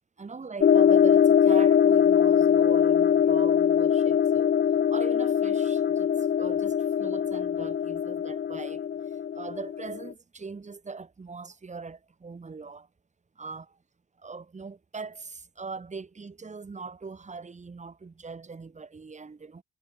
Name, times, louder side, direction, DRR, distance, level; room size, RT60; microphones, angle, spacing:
voice 1, 0.2-4.6 4.9-12.9 13.3-13.8 14.2-19.6, right 4 dB, 25° right, 1.4 m, -41 dB
sound 1, 0.6-10.1, left 8 dB, 35° left, 0.5 m, -22 dB
cardioid pair, 90°, 30 cm